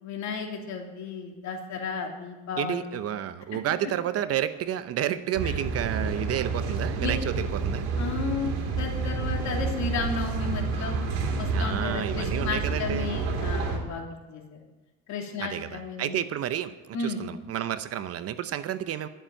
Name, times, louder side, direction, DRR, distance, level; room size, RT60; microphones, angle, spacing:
voice 1, 0.0-3.0 3.5-3.6 5.4-5.5 7.0-7.2 8.0-11.0 11.4-14.4 15.1-16.1 16.9-17.2, left 4 dB, 55° left, 1 dB, 3.0 m, -33 dB
voice 2, 2.6-7.9 11.5-13.2 15.4-19.1, right 11 dB, 45° right, 12 dB, 0.8 m, -31 dB
sound 1, 5.3-13.8, right 4 dB, 90° right, 2.8 m, -29 dB
12.0 x 7.3 x 8.9 m, 1.2 s
supercardioid pair, 105°, 34 cm